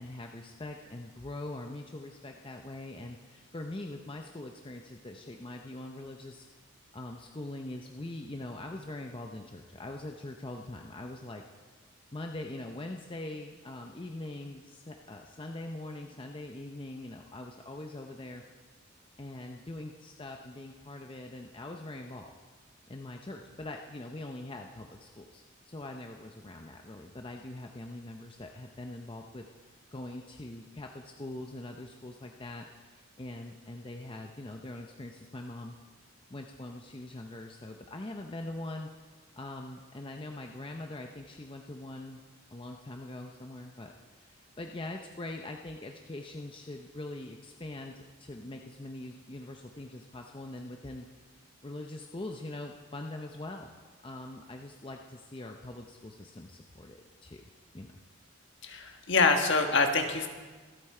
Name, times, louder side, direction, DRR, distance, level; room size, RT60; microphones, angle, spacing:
voice 1, 0.0-6.5 6.9-11.4 12.1-18.4 19.2-22.3 22.9-29.5 29.9-35.8 36.3-38.9 39.4-42.2 42.5-51.1 51.6-53.7 54.0-57.4 57.7-57.9, left 2 dB, 25° left, 3 dB, 0.6 m, -42 dB
voice 2, 58.6-60.3, left 4 dB, 55° left, 4 dB, 1.4 m, -25 dB
24.5 x 8.5 x 4.4 m, 1.4 s
head